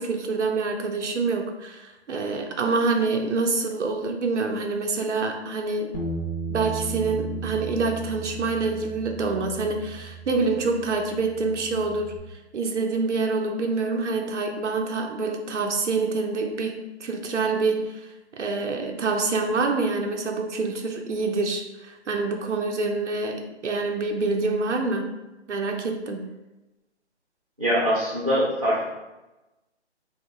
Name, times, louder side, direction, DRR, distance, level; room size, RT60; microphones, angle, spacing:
voice 1, 0.0-6.0 6.5-18.1 18.3-25.1 25.5-26.3, right 3 dB, 85° right, 2 dB, 0.6 m, -26 dB
Bass guitar, 5.9-12.2, right 4 dB, 40° left, 0.6 m, -36 dB
voice 2, 27.6-28.8, equal, 30° right, -8 dB, 0.6 m, -23 dB
2.9 x 2.1 x 3.6 m, 1.0 s
hypercardioid pair, 180°, 35 cm